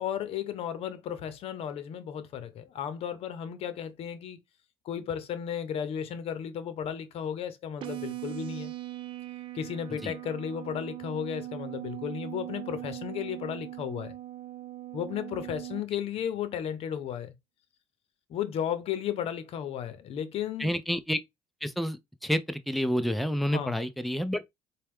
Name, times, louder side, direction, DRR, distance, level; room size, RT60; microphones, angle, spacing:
voice 1, 0.0-4.4 4.8-8.7 9.5-14.2 14.9-17.3 18.3-20.7 23.5-23.8, left 9 dB, 60° left, 0.7 m, -34 dB
sound 1, 7.8-15.8, right 16 dB, 50° right, 0.5 m, -40 dB
voice 2, 20.6-21.2 21.6-24.4, equal, ahead, 0.5 m, -29 dB
4.1 x 2.3 x 3.5 m
supercardioid pair, 90°, 11 cm